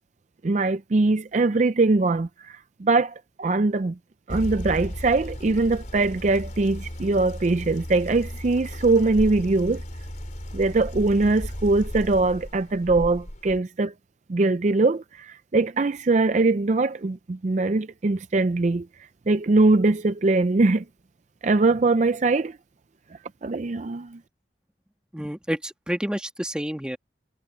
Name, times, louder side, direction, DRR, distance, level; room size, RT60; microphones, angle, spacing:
voice 1, 0.4-3.9 4.3-9.8 10.5-13.9 14.3-18.9 19.3-20.8 21.4-22.6 23.4-24.2, right 3 dB, 40° right, 0.4 m, -22 dB
sound 1, 4.3-13.6, equal, 40° left, 3.9 m, -35 dB
voice 2, 25.1-27.0, equal, 5° right, 1.4 m, -29 dB
head